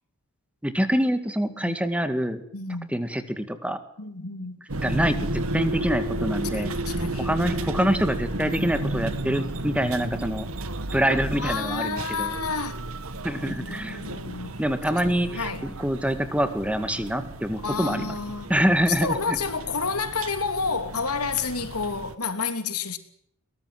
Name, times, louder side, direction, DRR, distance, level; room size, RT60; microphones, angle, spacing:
voice 1, 0.6-2.4 2.9-3.8 4.7-6.7 7.2-10.5 10.9-12.3 13.2-14.0 14.6-18.1 18.5-19.4, equal, 5° right, 2.1 m, -25 dB
voice 2, 1.5-1.8 2.5-2.9 4.0-4.6 6.5-7.3 7.6-7.7 11.3-12.8 13.4-14.5 14.9-15.0 15.3-15.7 17.6-18.5 18.8-23.0, left 5 dB, 90° left, 3.2 m, -30 dB
sound 1, 4.7-22.2, right 1 dB, 70° right, 1.9 m, -33 dB
22.5 x 19.5 x 7.7 m
head